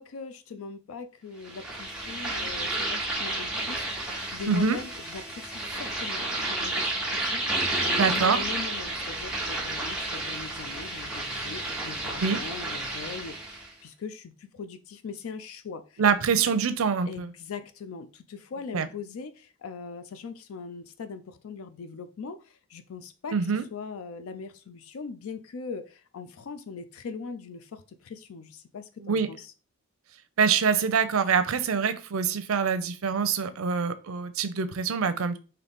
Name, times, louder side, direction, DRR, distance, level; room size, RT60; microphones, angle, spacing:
voice 1, 0.0-16.0 17.1-23.4 23.7-29.5, left 5 dB, 85° left, 0.4 m, -41 dB
sound 1, 1.4-13.7, right 2 dB, 5° right, 0.7 m, -31 dB
voice 2, 4.5-4.8 8.0-8.4 12.2-12.4 16.0-17.3 18.7-18.9 23.3-23.6 29.0-29.3 30.4-35.4, right 6 dB, 80° right, 0.5 m, -25 dB
3.9 x 2.7 x 3.5 m
head